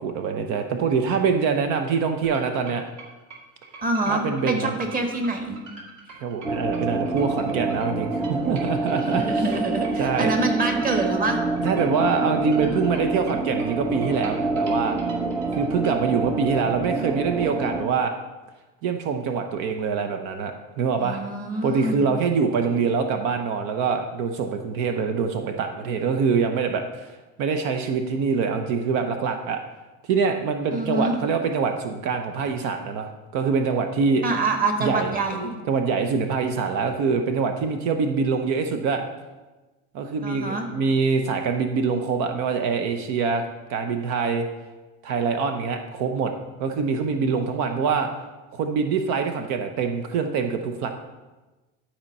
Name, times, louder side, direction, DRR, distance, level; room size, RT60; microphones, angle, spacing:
voice 1, 0.0-2.8 4.1-4.8 6.2-9.6 10.0-10.3 11.6-15.0 15.6-18.1 18.8-21.2 21.6-29.6 30.0-34.2 34.8-35.1 35.7-39.0 39.9-43.4 43.7-44.5 45.0-46.3 46.6-48.1 48.5-50.9, right 5 dB, 75° right, 6 dB, 0.8 m, -24 dB
sound 1, 2.2-16.0, right 4 dB, 55° right, 2.4 m, -44 dB
voice 2, 3.8-5.6 9.0-11.4 21.0-22.1 30.7-31.2 34.2-35.5 40.2-40.7, right 2 dB, 30° right, 4 dB, 1.4 m, -26 dB
sound 2, 6.4-17.8, right 3 dB, 10° right, 0.5 m, -27 dB
12.0 x 4.4 x 5.4 m, 1.2 s
cardioid pair, 130°, 30 cm